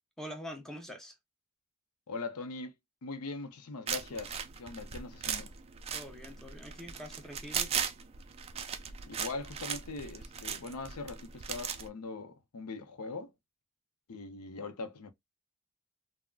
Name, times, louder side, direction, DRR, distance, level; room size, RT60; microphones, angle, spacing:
voice 1, 0.2-1.2 5.9-7.8, equal, ahead, 0.7 m, -45 dB
voice 2, 2.1-2.7 3.0-5.5 9.1-13.3 14.1-15.1, left 3 dB, 80° left, 0.6 m, -41 dB
sound 1, 3.9-11.9, right 7 dB, 25° right, 0.3 m, -38 dB
3.5 x 2.1 x 2.3 m
head